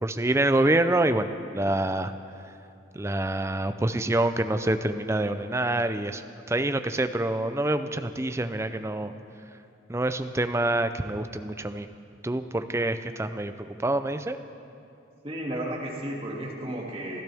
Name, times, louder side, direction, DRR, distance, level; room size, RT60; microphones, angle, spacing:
voice 1, 0.0-2.1 2.9-6.2 6.5-9.1 9.9-11.9 12.2-14.4, right 1 dB, 15° right, 9 dB, 0.4 m, -26 dB
voice 2, 15.2-17.2, right 1 dB, 30° right, -4 dB, 2.4 m, -33 dB
29.0 x 12.0 x 3.5 m, 2.6 s
head